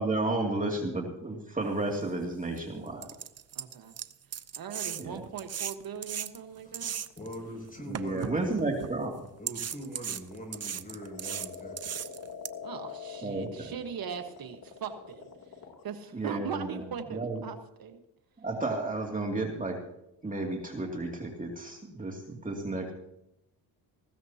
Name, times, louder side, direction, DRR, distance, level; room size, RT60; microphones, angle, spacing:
voice 1, 0.0-3.1 5.0-5.2 7.9-9.3 13.2-13.7 16.1-16.8 17.1-17.4 18.4-19.8 20.2-22.9, right 2 dB, 20° right, 0 dB, 2.6 m, -32 dB
sound 1, 2.0-2.1 2.6-2.7 3.0-7.4 7.9-8.9 9.5-12.5, right 9 dB, 40° right, 0.7 m, -37 dB
voice 2, 3.5-3.9 4.6-7.0 12.6-15.3 15.8-18.0, right 7 dB, 60° right, 6 dB, 1.4 m, -40 dB
voice 3, 6.6-8.5 9.4-12.1, equal, 20° left, 2 dB, 6.9 m, -43 dB
sound 2, 6.9-15.8, left 6 dB, 70° left, 3.3 m, -45 dB
20.0 x 16.0 x 2.9 m, 0.84 s
cardioid pair, 85°, 39 cm